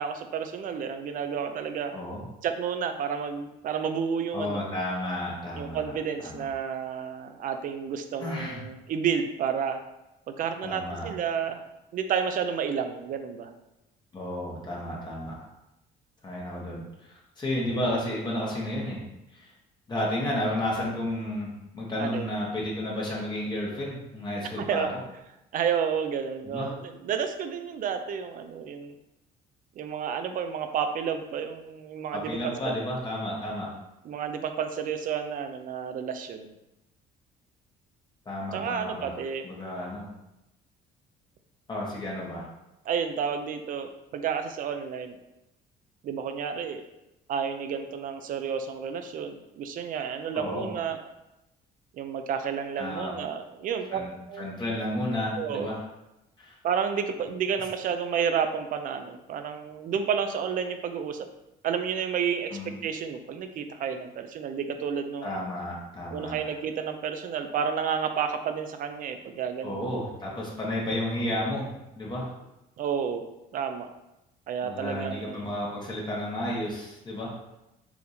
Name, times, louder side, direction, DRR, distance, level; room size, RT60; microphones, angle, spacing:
voice 1, 0.0-2.0 2.4-4.6 5.5-9.8 10.3-11.6 11.9-13.5 22.0-22.3 24.6-24.9 25.5-28.9 29.8-32.7 34.0-36.5 38.5-39.5 42.9-45.2 46.0-46.8 47.3-51.0 51.9-54.0 54.3-54.7 55.4-55.7 56.6-61.3 61.6-65.4 66.1-69.8 72.8-73.2 73.5-73.9 74.5-75.4, right 7 dB, 55° right, 8 dB, 0.5 m, -31 dB
voice 2, 1.9-2.3 4.3-5.9 6.2-6.5 8.2-8.6 10.6-11.1 14.1-15.5 16.2-16.8 17.1-19.0 19.3-19.5 19.9-21.5 21.7-25.0 26.4-26.7 32.1-33.7 38.2-39.1 39.4-40.1 41.7-42.5 50.3-50.7 52.8-53.1 53.9-54.1 54.4-55.8 56.4-56.6 62.5-62.7 65.2-66.4 69.6-71.7 71.9-72.3 74.6-77.3, left 1 dB, 25° left, -4 dB, 1.2 m, -32 dB
4.7 x 3.5 x 2.7 m, 0.91 s
cardioid pair, 110°, 17 cm